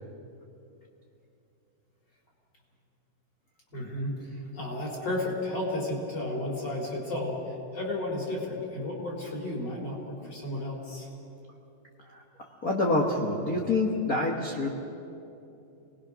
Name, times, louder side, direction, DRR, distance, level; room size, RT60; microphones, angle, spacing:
voice 1, 3.7-11.1, left 1 dB, 30° left, -2 dB, 4.5 m, -33 dB
voice 2, 12.6-14.7, left 2 dB, 70° left, -2 dB, 0.8 m, -26 dB
27.5 x 20.0 x 6.3 m, 2.8 s
omnidirectional pair, 4.2 m